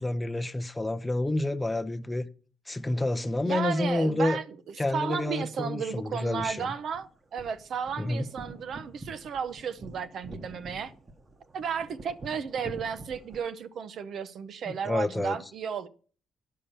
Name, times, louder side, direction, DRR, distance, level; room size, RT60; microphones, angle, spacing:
voice 1, 0.0-2.3 2.7-4.4 4.8-6.7 8.0-8.3 14.7-15.4, left 2 dB, 15° left, 0.6 m, -29 dB
voice 2, 3.4-4.6 4.9-10.9 11.5-15.9, right 7 dB, 65° right, 0.7 m, -33 dB
sound 1, 6.3-13.4, right 2 dB, 30° right, 1.1 m, -47 dB
9.7 x 5.6 x 6.8 m
cardioid pair, 90°, 0 cm